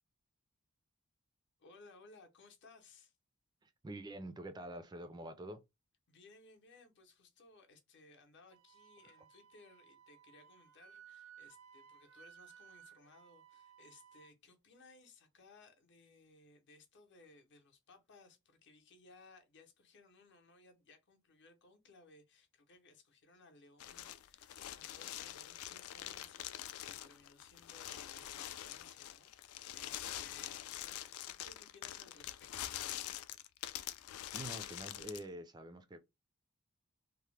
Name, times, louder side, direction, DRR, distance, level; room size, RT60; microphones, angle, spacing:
voice 1, 1.6-3.1 6.1-32.8, left 3 dB, 55° left, 0.7 m, -62 dB
voice 2, 3.6-5.6 34.3-36.0, right 1 dB, 20° right, 0.3 m, -46 dB
Wind instrument woodwind instrument, 8.5-14.3, right 8 dB, 80° right, 0.4 m, -60 dB
sound 1, 23.8-35.3, left 12 dB, 75° left, 0.3 m, -45 dB
2.8 x 2.0 x 3.2 m
head